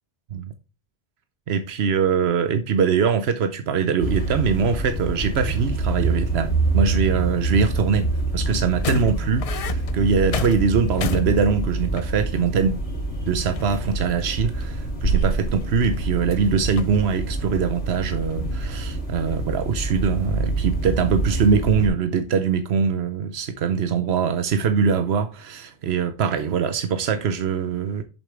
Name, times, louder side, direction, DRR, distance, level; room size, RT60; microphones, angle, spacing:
voice 1, 1.5-8.1 8.3-12.8 13.3-28.0, right 6 dB, 90° right, 1.0 m, -22 dB
sound 1, 3.9-4.7 5.2-6.3 6.6-8.0 8.5-12.5 12.9-13.0 13.2-14.3 14.6-16.5 16.8-17.6 17.9-18.8 19.3-20.7 21.2-21.5, left 6 dB, 45° left, 0.5 m, -35 dB
sound 2, 4.0-21.9, right 2 dB, 90° left, 3.5 m, -26 dB
8.1 x 7.3 x 3.3 m
omnidirectional pair, 1.0 m